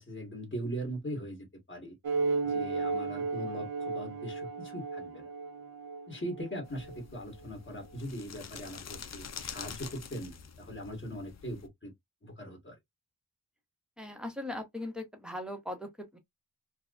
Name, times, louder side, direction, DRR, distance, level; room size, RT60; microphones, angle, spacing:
voice 1, 0.0-1.9 2.4-5.3 6.1-11.9 12.2-12.8, equal, 30° left, 1.7 m, -40 dB
sound 1, 2.0-7.0, right 4 dB, 70° right, 0.7 m, -34 dB
sound 2, 6.7-11.7, left 6 dB, 45° left, 0.5 m, -46 dB
voice 2, 14.0-16.2, left 1 dB, ahead, 0.7 m, -39 dB
4.6 x 2.0 x 2.4 m
wide cardioid pair, 135°, 38 cm